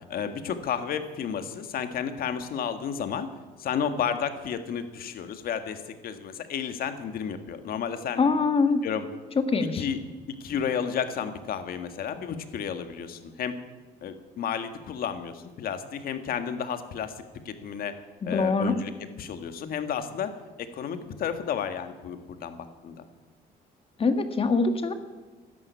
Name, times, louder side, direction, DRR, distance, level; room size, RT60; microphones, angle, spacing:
voice 1, 0.1-3.3 3.6-8.2 8.8-9.1 9.8-10.0 10.3-13.5 14.0-17.1 17.4-17.9 18.3-18.9 19.2-20.3 20.6-23.0, left 7 dB, 60° left, 8 dB, 1.8 m, -32 dB
voice 2, 8.2-8.8 9.3-9.9 18.2-18.7 24.0-24.9, left 4 dB, 35° left, 8 dB, 1.7 m, -23 dB
13.5 x 11.0 x 9.5 m, 1.3 s
cardioid pair, 110°, 17 cm